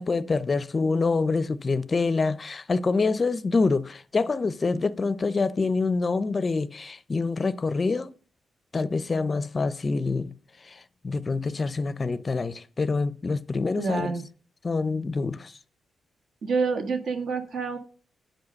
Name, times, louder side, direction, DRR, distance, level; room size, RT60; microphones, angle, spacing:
voice 1, 0.0-8.1 8.7-10.3 10.6-14.1 14.6-15.6, left 4 dB, 35° left, 0.5 m, -26 dB
voice 2, 13.8-14.3 16.4-17.8, right 4 dB, 70° right, 1.4 m, -27 dB
8.9 x 4.8 x 6.3 m
cardioid pair, 90°, 0 cm